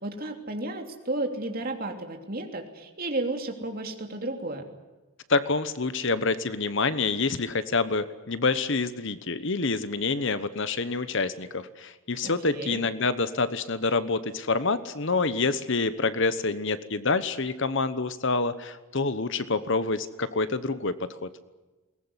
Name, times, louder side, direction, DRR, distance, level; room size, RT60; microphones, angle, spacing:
voice 1, 0.0-4.6 12.2-12.8, right 2 dB, 40° right, 4 dB, 3.1 m, -33 dB
voice 2, 5.3-21.3, left 3 dB, 55° left, 13 dB, 1.1 m, -27 dB
22.0 x 19.5 x 9.8 m, 1.2 s
head